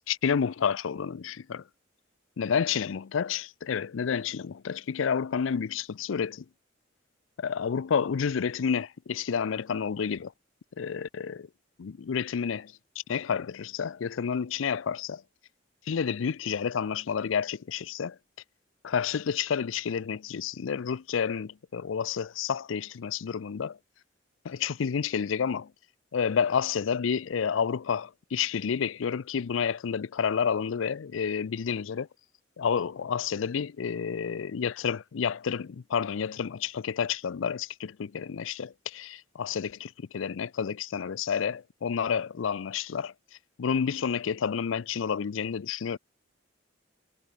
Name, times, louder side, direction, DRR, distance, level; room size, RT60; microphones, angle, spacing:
voice 1, 0.1-1.6 2.4-6.5 7.4-10.3 10.8-11.5 11.8-12.7 13.1-15.2 15.9-18.2 18.8-23.8 24.4-25.7 26.1-32.1 32.6-43.1 43.6-46.0, left 7 dB, 80° left, 0.4 m, -30 dB
head